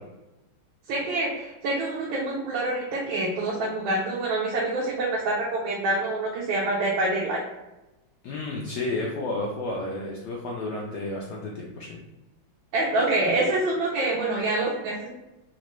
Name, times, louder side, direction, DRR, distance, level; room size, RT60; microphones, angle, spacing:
voice 1, 0.9-7.4 12.7-15.1, right 2 dB, 80° right, -4 dB, 1.4 m, -26 dB
voice 2, 8.2-12.0, left 2 dB, 75° left, -2 dB, 1.0 m, -31 dB
3.9 x 2.2 x 3.0 m, 1.0 s
omnidirectional pair, 2.2 m